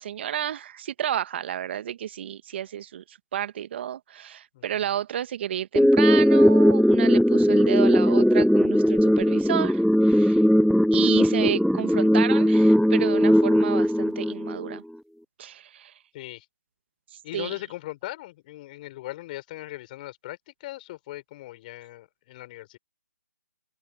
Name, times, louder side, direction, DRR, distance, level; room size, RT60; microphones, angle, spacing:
voice 1, 0.0-10.4 10.9-14.8 15.4-15.9 17.3-17.5, right 10 dB, 40° right, 1.6 m, -31 dB
voice 2, 4.5-5.0 16.1-16.5 17.2-22.8, left 17 dB, 30° left, 5.8 m, -39 dB
sound 1, 5.8-14.8, equal, ahead, 0.3 m, -19 dB
open air
figure-of-eight pair, 150°, 9 cm